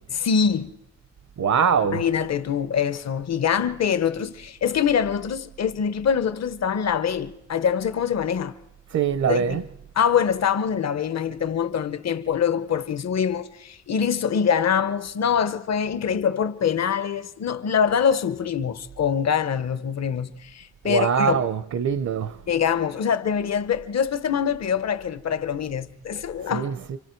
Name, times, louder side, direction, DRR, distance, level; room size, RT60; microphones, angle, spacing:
voice 1, 0.1-0.7 1.9-8.5 9.3-9.6 10.0-21.4 22.5-26.7, left 7 dB, 65° left, 0.9 m, -24 dB
voice 2, 1.4-2.0 8.9-9.6 20.8-22.4 26.5-27.0, right 7 dB, 70° right, 0.7 m, -23 dB
29.0 x 25.5 x 4.5 m
wide cardioid pair, 180°, 29 cm